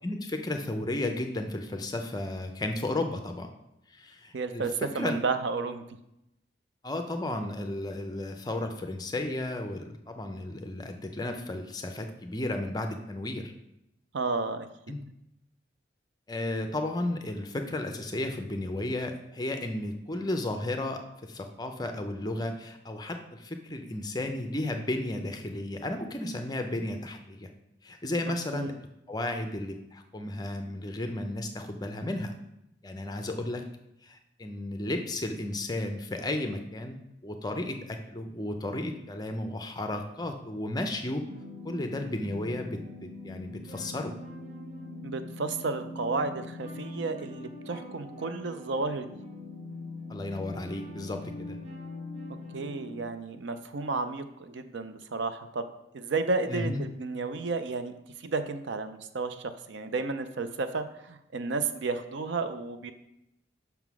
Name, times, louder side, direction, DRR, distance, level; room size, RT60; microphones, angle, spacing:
voice 1, 0.0-3.5 3.9-4.6 5.0-5.2 6.8-13.5 14.9-15.0 16.3-27.5 27.8-28.7 29.1-32.3 32.8-33.6 34.0-37.0 37.2-41.3 41.6-44.1 50.1-51.6 56.5-56.8, left 1 dB, 20° left, 5 dB, 0.6 m, -33 dB
voice 2, 4.3-5.8 14.1-15.0 28.5-28.8 45.0-49.1 52.5-57.9 58.2-62.9, right 3 dB, 70° right, 10 dB, 0.5 m, -32 dB
sound 1, 41.3-53.0, left 2 dB, 40° right, 1.5 m, -42 dB
5.7 x 3.7 x 6.0 m, 0.83 s
head